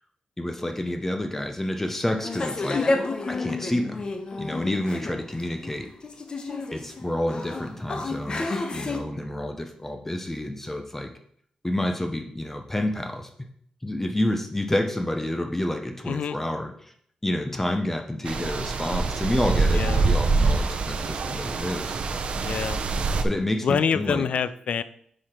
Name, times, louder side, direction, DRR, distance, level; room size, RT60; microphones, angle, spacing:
voice 1, 0.4-2.8 3.3-4.0 4.4-5.9 6.7-11.1 11.6-13.3 13.8-16.9 17.2-22.0 23.2-24.3, left 1 dB, 15° left, 5 dB, 0.7 m, -29 dB
sound 1, 2.2-9.0, left 3 dB, 40° left, 0.9 m, -30 dB
voice 2, 16.1-16.4 19.7-20.1 22.3-22.8 23.6-24.8, left 7 dB, 70° left, 14 dB, 0.4 m, -26 dB
sound 2, 18.3-23.2, right 3 dB, 60° right, 0.6 m, -25 dB
5.6 x 4.9 x 4.4 m, 0.65 s
cardioid pair, 85°, 2 cm